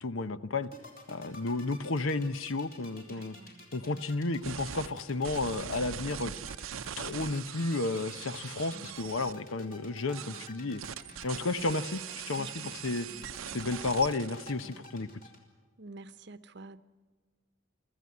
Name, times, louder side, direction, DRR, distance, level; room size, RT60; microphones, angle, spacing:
voice 1, 0.0-0.7 1.1-3.4 3.7-6.3 7.0-10.8 11.2-13.1 13.5-15.1, left 3 dB, 85° left, 0.9 m, -32 dB
sound 1, 0.6-15.4, left 1 dB, 45° left, 3.9 m, -50 dB
voice 2, 3.0-3.6 11.3-11.5 12.4-13.0 15.8-16.8, right 3 dB, 55° right, 0.8 m, -49 dB
sound 2, 4.4-4.9 5.2-9.3 10.1-14.5, right 9 dB, 85° right, 0.6 m, -42 dB
24.5 x 14.5 x 9.7 m
head